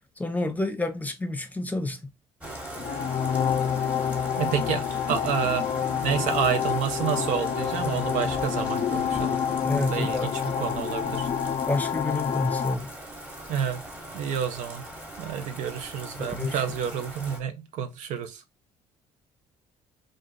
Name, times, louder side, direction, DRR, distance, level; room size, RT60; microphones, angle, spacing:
voice 1, 0.2-2.0 9.6-10.3 11.7-12.9 16.2-16.8, left 2 dB, 10° left, 0.8 m, -29 dB
Bathtub (filling or washing), 2.4-17.4, right 1 dB, 10° right, 1.1 m, -40 dB
sound 1, 2.7-12.7, left 8 dB, 45° left, 0.4 m, -28 dB
voice 2, 4.4-5.7 6.0-9.4 9.7-11.3 13.5-13.8 14.1-14.8 15.2-18.4, right 8 dB, 75° right, 0.6 m, -29 dB
2.5 x 2.5 x 3.6 m
supercardioid pair, 85°, 13 cm